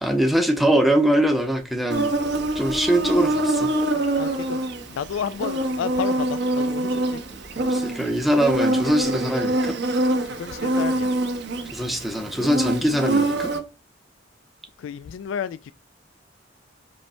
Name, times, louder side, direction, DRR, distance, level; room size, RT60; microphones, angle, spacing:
voice 1, 0.0-2.2 2.5-3.7 7.6-9.8 11.7-13.5, right 1 dB, ahead, 0.7 m, -22 dB
Insect, 1.9-13.6, right 1 dB, 60° right, 1.1 m, -25 dB
voice 2, 4.2-4.6 5.0-7.2 10.2-11.1 14.8-15.7, left 8 dB, 85° left, 0.3 m, -31 dB
5.3 x 3.2 x 5.5 m
head